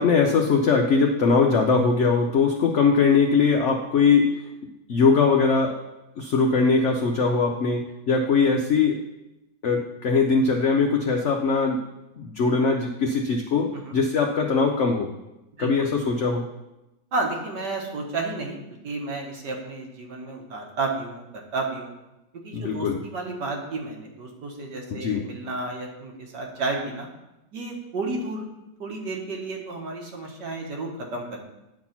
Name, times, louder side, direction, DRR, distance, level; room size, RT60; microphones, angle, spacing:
voice 1, 0.0-4.3 4.9-5.8 6.2-9.0 9.6-11.8 12.2-15.1 15.6-16.4 22.5-23.0 24.9-25.2, left 4 dB, 60° left, 2 dB, 0.8 m, -21 dB
voice 2, 17.1-22.0 22.4-27.1 27.5-28.5 28.8-31.4, right 3 dB, 75° right, 0 dB, 1.9 m, -32 dB
9.4 x 4.2 x 5.8 m, 0.96 s
omnidirectional pair, 1.9 m